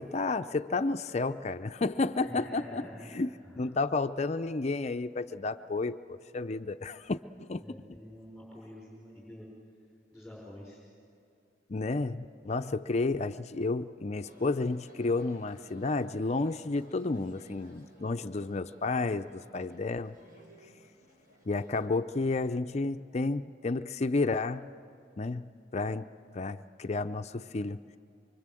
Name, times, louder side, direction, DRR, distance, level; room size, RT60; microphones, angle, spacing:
voice 1, 0.0-2.9 3.1-7.6 11.7-20.2 21.5-24.7 25.2-27.8, left 3 dB, 40° left, 10 dB, 0.5 m, -31 dB
voice 2, 2.2-3.6 7.6-9.5 10.1-10.8, left 1 dB, ahead, -5 dB, 5.3 m, -47 dB
sound 1, 14.2-21.9, equal, 50° right, 6.4 m, -58 dB
25.0 x 24.5 x 7.7 m, 2.5 s
head